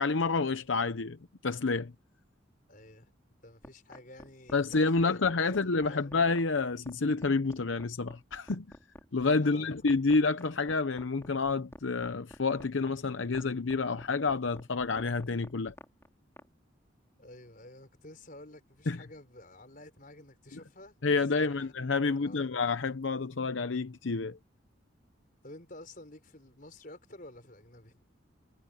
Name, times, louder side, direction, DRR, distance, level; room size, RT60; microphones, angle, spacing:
voice 1, 0.0-1.9 4.5-8.8 9.1-15.7 18.9-19.0 21.0-24.4, left 4 dB, 80° left, 0.8 m, -29 dB
voice 2, 2.7-3.1 3.4-6.1 9.4-9.8 17.2-21.7 22.1-22.5 25.4-28.0, left 1 dB, 45° left, 5.2 m, -51 dB
sound 1, 3.6-16.5, left 1 dB, 15° left, 3.8 m, -49 dB
head